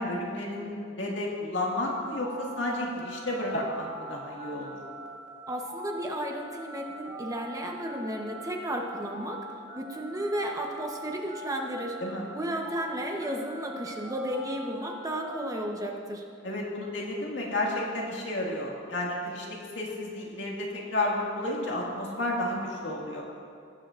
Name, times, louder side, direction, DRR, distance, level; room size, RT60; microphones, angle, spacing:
voice 1, 0.0-4.8 12.0-12.3 16.4-23.2, left 1 dB, 75° left, -3 dB, 2.0 m, -32 dB
sound 1, 1.8-12.0 12.2-15.5, equal, 45° right, 1.9 m, -43 dB
voice 2, 5.5-9.4 9.7-12.0 12.3-16.2, right 1 dB, 20° right, 1 dB, 0.9 m, -33 dB
20.0 x 8.8 x 2.5 m, 2.5 s
head